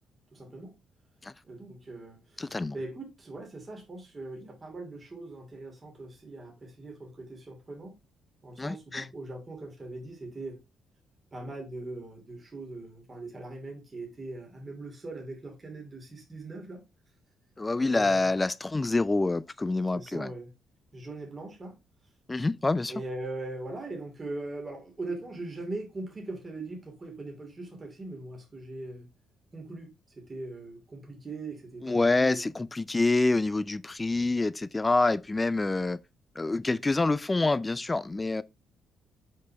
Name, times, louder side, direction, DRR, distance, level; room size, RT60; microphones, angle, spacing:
voice 1, 0.3-0.7 1.4-7.9 8.4-10.6 11.3-16.8 17.8-18.3 19.9-20.5 20.9-21.8 22.9-29.1 29.5-29.9 30.2-32.5, right 2 dB, 30° right, 2.6 m, -40 dB
voice 2, 2.4-2.8 8.6-9.1 17.6-20.3 22.3-22.9 31.8-36.0 36.4-38.4, left 3 dB, 20° left, 0.4 m, -27 dB
6.3 x 5.3 x 3.4 m
cardioid pair, 90°, 0 cm